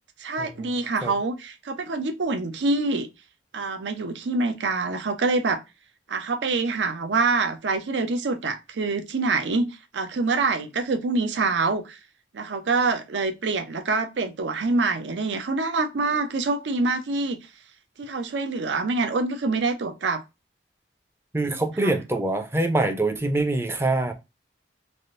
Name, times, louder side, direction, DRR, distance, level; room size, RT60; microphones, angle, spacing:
voice 1, 0.2-3.1 3.5-5.6 6.1-12.0 12.3-17.4 18.0-20.2 21.8-22.0, right 3 dB, 75° right, 0.5 m, -25 dB
voice 2, 21.3-24.1, right 2 dB, 15° right, 0.5 m, -24 dB
3.5 x 2.5 x 2.5 m
head